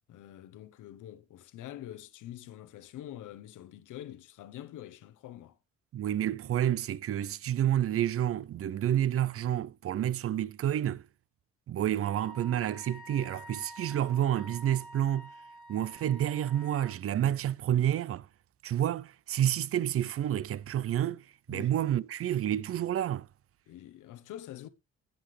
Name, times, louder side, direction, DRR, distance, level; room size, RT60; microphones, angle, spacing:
voice 1, 0.1-5.6 21.5-21.8 23.7-24.7, left 12 dB, 85° left, 0.9 m, -45 dB
voice 2, 5.9-11.0 11.7-15.3 15.7-18.3 18.6-21.2 21.5-23.3, right 11 dB, 50° right, 0.5 m, -29 dB
Wind instrument woodwind instrument, 12.0-17.0, right 1 dB, ahead, 2.3 m, -48 dB
15.5 x 5.8 x 3.2 m
cardioid pair, 90°, 30 cm